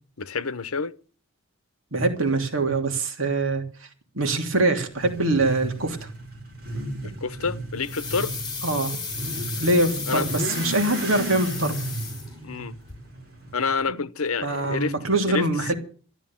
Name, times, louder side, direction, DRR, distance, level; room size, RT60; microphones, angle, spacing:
voice 1, 0.2-1.0 7.0-8.3 10.1-10.3 12.4-12.8 13.5-14.9 15.3-15.7, left 4 dB, 80° left, 0.9 m, -28 dB
voice 2, 1.9-3.6 4.1-6.1 7.0-7.1 8.6-9.0 9.6-11.7 13.9-14.0 14.4-15.7, right 2 dB, 65° right, 2.9 m, -23 dB
Motorcycle / Accelerating revving vroom, 4.9-13.8, right 1 dB, 45° right, 4.8 m, -34 dB
sound 1, 7.8-12.6 12.9-13.0, left 4 dB, 20° left, 6.0 m, -34 dB
13.5 x 12.0 x 7.3 m
head